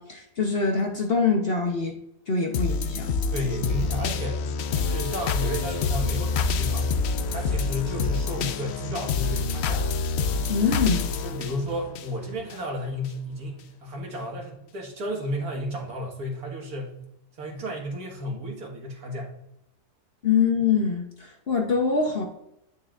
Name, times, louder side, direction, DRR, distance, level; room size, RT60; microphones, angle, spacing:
voice 1, 0.0-1.9 2.3-3.1 10.5-11.1 20.2-22.2, left 5 dB, 45° left, 2 dB, 0.9 m, -24 dB
sound 1, 2.5-12.6 13.0-13.1, left 4 dB, 70° left, 0.6 m, -27 dB
voice 2, 3.3-4.4 4.7-6.9 7.3-9.9 11.2-16.9 17.4-19.3, equal, 70° right, 0 dB, 2.0 m, -32 dB
9.2 x 6.3 x 2.4 m, 0.80 s
omnidirectional pair, 1.6 m